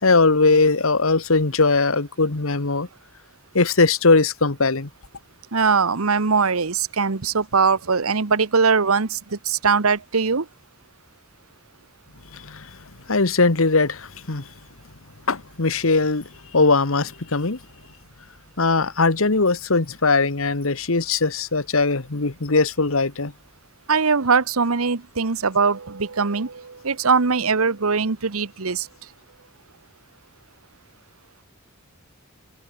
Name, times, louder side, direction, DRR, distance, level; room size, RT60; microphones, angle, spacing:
voice 1, 0.0-2.9 3.5-4.9 12.3-12.7 13.1-14.5 15.3-17.6 18.6-23.3, left 3 dB, 75° left, 1.5 m, -20 dB
voice 2, 5.5-10.5 23.9-28.9, right 5 dB, 85° right, 1.1 m, -21 dB
head